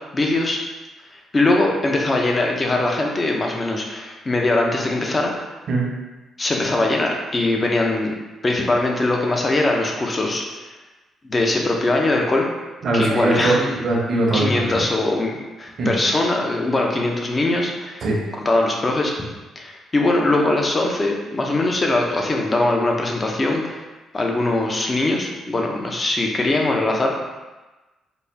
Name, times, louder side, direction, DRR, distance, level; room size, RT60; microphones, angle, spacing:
voice 1, 0.1-0.6 1.3-5.3 6.4-8.1 8.4-10.4 11.2-12.5 12.9-13.7 14.3-18.0 18.4-19.1 19.6-23.8 24.1-27.1, left 2 dB, 30° left, 0 dB, 0.6 m, -21 dB
voice 2, 12.8-13.6 13.8-14.7 15.8-16.0 18.0-18.2, right 2 dB, 60° right, -2 dB, 0.9 m, -20 dB
4.2 x 2.3 x 3.3 m, 1.2 s
cardioid pair, 90°, 0 cm